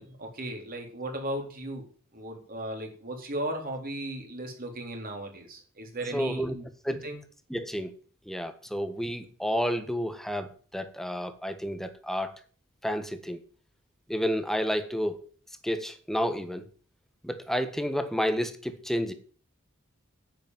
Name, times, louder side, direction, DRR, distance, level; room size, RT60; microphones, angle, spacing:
voice 1, 0.0-1.9 2.1-7.2, right 1 dB, 45° right, 2 dB, 4.1 m, -36 dB
voice 2, 6.1-6.6 6.8-7.0 7.5-7.9 8.3-10.5 10.7-12.3 12.8-13.4 14.1-15.3 15.6-16.6 17.2-19.1, equal, ahead, 9 dB, 1.5 m, -30 dB
10.5 x 8.6 x 9.3 m, 0.43 s
head